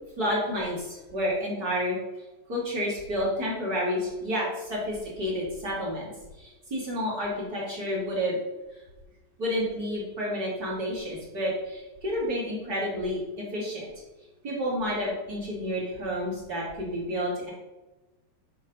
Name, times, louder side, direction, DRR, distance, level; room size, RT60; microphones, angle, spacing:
voice 1, 0.2-2.0 2.5-6.1 6.4-8.4 9.4-13.9 14.4-17.5, equal, 30° right, -5 dB, 2.2 m, -30 dB
10.0 x 3.9 x 5.4 m, 1.1 s
omnidirectional pair, 4.6 m